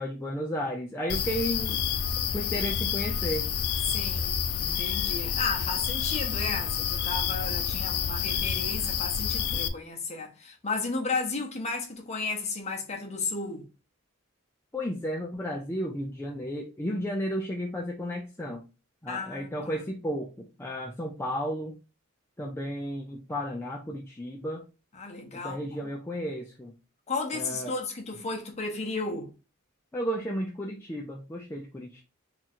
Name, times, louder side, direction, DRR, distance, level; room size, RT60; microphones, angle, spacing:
voice 1, 0.0-1.9 2.3-3.5 14.7-18.6 19.0-21.7 22.4-24.6 25.3-26.7 27.3-27.7 29.9-32.0, equal, 10° left, 0.4 m, -33 dB
sound 1, 1.1-9.7, left 7 dB, 90° left, 0.4 m, -29 dB
voice 2, 3.9-13.6 19.1-19.8 24.9-25.9 27.1-29.3, left 3 dB, 30° left, 0.7 m, -34 dB
2.9 x 2.4 x 4.2 m
head